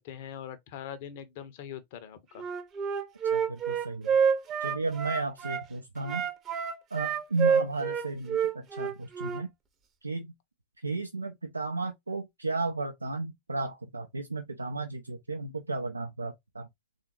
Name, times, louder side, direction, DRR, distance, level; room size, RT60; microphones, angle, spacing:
voice 1, 0.0-2.4, left 9 dB, 50° left, 0.7 m, -42 dB
Wind instrument woodwind instrument, 2.4-5.6 6.0-9.4, right 7 dB, 30° right, 0.7 m, -28 dB
voice 2, 3.3-4.2 4.6-6.3 6.9-9.5 10.0-10.3 10.8-16.7, right 3 dB, 80° right, 0.4 m, -34 dB
3.6 x 2.5 x 2.9 m
figure-of-eight pair, 90°, 0 cm